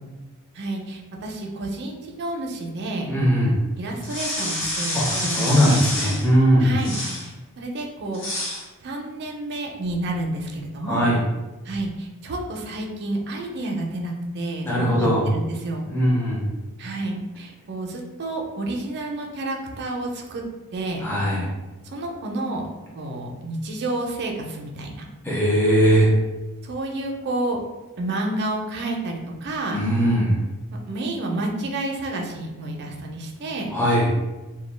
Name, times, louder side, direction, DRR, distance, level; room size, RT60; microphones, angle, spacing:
voice 1, 0.6-3.1 3.8-5.8 6.6-8.2 8.8-11.2 11.7-15.9 16.8-20.4 20.7-21.0 21.9-22.6 22.9-25.1 26.6-27.6 28.0-29.8 30.9-33.7, right 2 dB, 50° right, 1 dB, 0.4 m, -30 dB
voice 2, 3.1-3.6 4.9-6.8 10.8-11.2 14.6-15.3 15.9-16.4 21.0-21.5 25.2-26.1 29.7-30.4 33.7-34.2, equal, 10° left, -6 dB, 0.4 m, -20 dB
sound 1, 4.0-6.3 6.8-7.3 8.1-8.6, left 1 dB, 60° left, 0.8 m, -28 dB
2.2 x 2.1 x 3.2 m, 1.1 s
head